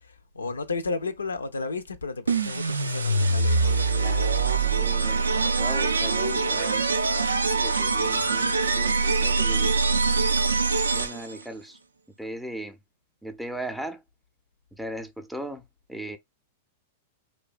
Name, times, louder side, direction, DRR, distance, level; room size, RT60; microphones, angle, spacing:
voice 1, 0.0-4.2, left 3 dB, 90° left, 0.4 m, -33 dB
sound 1, 2.3-11.4, right 4 dB, 90° right, 0.3 m, -24 dB
voice 2, 4.0-5.3 5.6-6.9 7.5-9.8 10.9-11.8 12.2-12.8 13.2-14.0 14.8-15.6 15.9-16.2, right 1 dB, 5° right, 0.4 m, -38 dB
2.6 x 2.2 x 2.3 m
hypercardioid pair, 105°, 0 cm